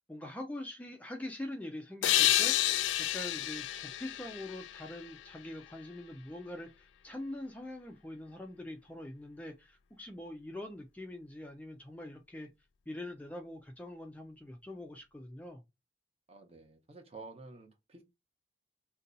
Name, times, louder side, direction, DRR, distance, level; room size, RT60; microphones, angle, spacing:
voice 1, 0.0-12.5 12.9-15.6, left 1 dB, 10° left, 0.3 m, -44 dB
sound 1, 2.0-5.5, left 13 dB, 90° left, 0.3 m, -30 dB
voice 2, 16.3-18.0, right 3 dB, 35° right, 0.7 m, -51 dB
2.6 x 2.2 x 3.8 m
head